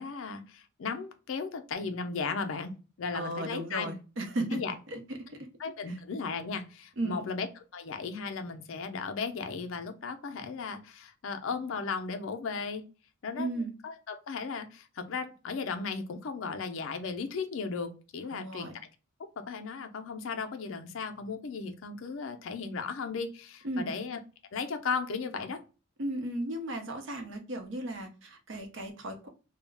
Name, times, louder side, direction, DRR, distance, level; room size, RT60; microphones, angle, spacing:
voice 1, 0.0-3.9 4.5-4.7 5.6-7.5 7.7-12.8 13.2-13.5 13.8-18.7 19.4-24.2 24.5-25.6, left 5 dB, 70° left, 7 dB, 0.4 m, -36 dB
voice 2, 3.1-4.6 4.9-5.5 5.8-6.0 7.0-7.3 13.4-13.7 18.3-18.7 23.6-23.9 26.0-29.3, right 1 dB, 60° right, 5 dB, 0.6 m, -35 dB
2.3 x 2.0 x 3.2 m, 0.34 s
head